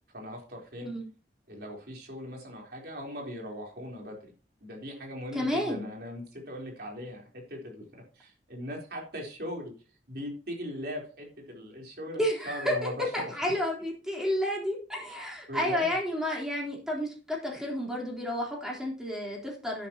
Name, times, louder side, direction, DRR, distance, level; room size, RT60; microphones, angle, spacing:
voice 1, 0.1-0.9 1.5-4.3 4.6-9.7 10.1-13.0 13.5-13.6 15.5-15.9, equal, 60° right, 0 dB, 4.0 m, -39 dB
voice 2, 5.3-5.8 12.2-19.9, left 1 dB, 5° right, -2 dB, 3.7 m, -31 dB
11.0 x 10.5 x 3.0 m, 0.37 s
head